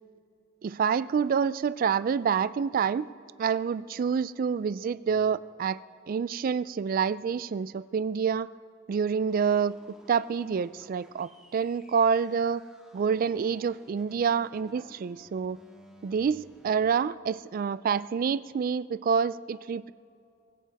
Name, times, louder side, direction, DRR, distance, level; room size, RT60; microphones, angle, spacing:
voice 1, 0.6-3.1 3.4-5.8 6.1-8.5 8.9-9.8 10.1-12.6 12.9-15.6 16.0-19.9, right 6 dB, 45° right, 17 dB, 0.3 m, -27 dB
sound 1, 9.3-16.7, equal, 5° right, 1.9 m, -57 dB
24.0 x 15.5 x 3.5 m, 2.6 s
head